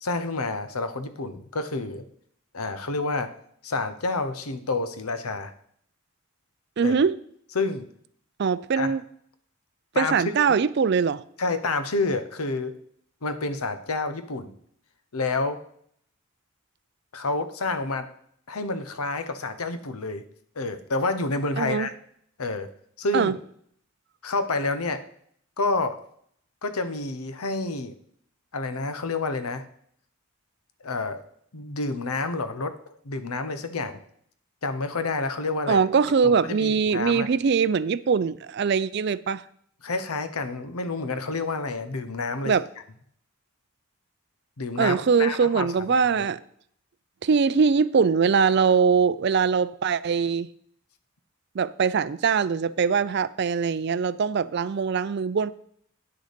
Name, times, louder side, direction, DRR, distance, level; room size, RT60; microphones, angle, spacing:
voice 1, 0.0-2.0 2.5-3.3 3.6-5.5 6.8-6.9 7.5-7.9 8.7-8.9 9.9-10.2 11.4-12.7 13.2-14.5 15.1-15.6 17.1-18.1 18.5-20.2 20.6-21.9 22.4-22.7 23.0-23.3 24.2-25.0 25.6-26.0 26.6-27.9 28.5-29.7 30.8-31.2 31.5-32.8 33.0-34.0 34.6-35.8 36.2-37.3 39.8-42.6 44.6-46.3, left 3 dB, 85° left, 0.9 m, -29 dB
voice 2, 6.8-7.2 8.4-9.0 10.0-11.2 21.6-21.9 23.1-23.4 35.7-39.4 42.4-42.6 44.8-46.4 47.2-50.5 51.5-55.5, right 5 dB, 50° right, 0.4 m, -22 dB
9.7 x 6.5 x 5.1 m
head